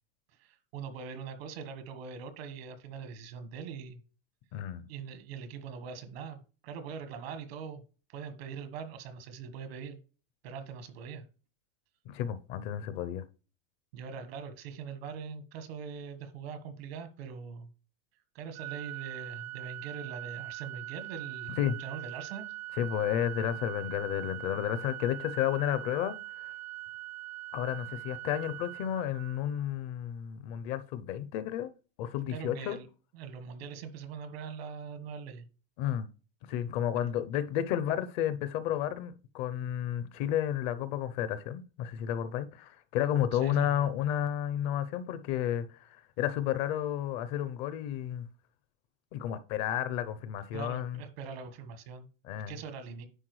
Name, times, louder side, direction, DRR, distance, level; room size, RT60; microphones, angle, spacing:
voice 1, 0.4-4.0 4.8-7.8 8.1-10.0 10.4-11.2 13.9-17.7 18.3-22.5 32.3-32.9 33.1-35.4 43.4-43.8 50.5-52.1 52.5-53.1, right 6 dB, 80° right, 1.4 m, -42 dB
voice 2, 4.5-4.9 12.1-13.2 21.6-21.8 22.8-26.5 27.5-31.7 32.0-32.8 35.8-36.1 36.5-48.3 49.1-51.0 52.2-52.6, left 10 dB, 45° left, 0.6 m, -32 dB
Organ, 18.6-29.6, right 17 dB, 25° right, 0.4 m, -42 dB
10.0 x 4.4 x 3.1 m
supercardioid pair, 160°, 30 cm